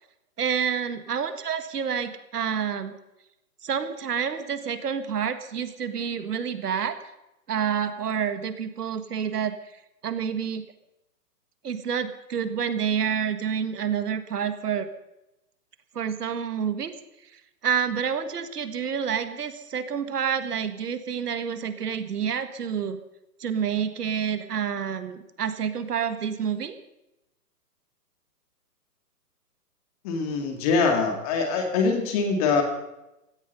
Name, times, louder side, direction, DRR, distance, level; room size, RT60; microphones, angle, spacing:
voice 1, 0.4-2.9 3.6-7.0 7.5-9.6 10.0-10.6 11.6-14.9 16.0-16.9 17.6-23.0 23.4-26.8, right 7 dB, 70° right, 10 dB, 1.8 m, -28 dB
voice 2, 30.0-32.6, left 4 dB, 25° left, 5 dB, 2.1 m, -23 dB
16.5 x 14.0 x 5.5 m, 0.92 s
hypercardioid pair, 165°, 48 cm